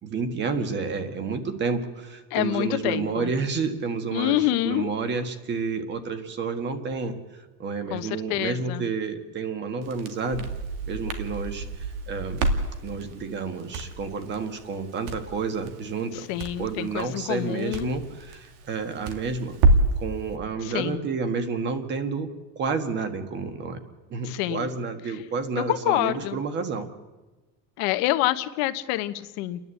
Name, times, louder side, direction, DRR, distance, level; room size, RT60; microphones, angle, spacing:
voice 1, 0.0-10.5 10.9-12.5 12.8-16.3 16.6-19.6 20.0-22.3 22.5-23.8 24.1-26.9, right 5 dB, 30° right, 8 dB, 1.6 m, -30 dB
voice 2, 2.3-3.3 4.1-4.9 7.9-8.8 16.3-17.9 20.6-21.1 24.3-24.7 25.7-26.4 27.8-29.6, left 15 dB, 80° left, 10 dB, 1.2 m, -27 dB
Crackle, 9.8-20.0, right 2 dB, 70° right, 2.3 m, -29 dB
30.0 x 11.0 x 8.3 m, 1.2 s
cardioid pair, 175°, 36 cm